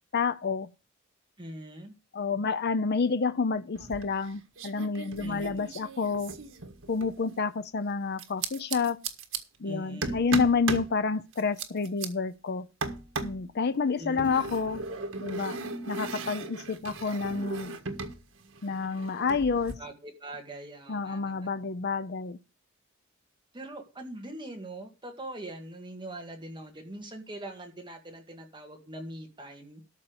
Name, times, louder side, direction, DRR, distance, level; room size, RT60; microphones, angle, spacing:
voice 1, 0.1-0.7 2.1-6.3 6.9-9.0 9.6-12.7 13.2-14.8 15.2-15.6 15.9-17.8 18.6-19.8 20.9-22.4, left 5 dB, 55° left, 0.6 m, -29 dB
voice 2, 1.4-1.9 5.2-5.7 9.6-10.3 13.9-14.5 16.7-17.2 19.8-21.5 23.5-29.8, right 1 dB, 25° right, 1.9 m, -42 dB
sound 1, 3.8-4.3 4.6-7.2 8.2-9.4 10.0-10.9 11.3-12.1 12.8-13.4 14.2-18.2 18.4-19.7, right 3 dB, 80° right, 1.6 m, -36 dB
13.0 x 4.4 x 7.8 m
head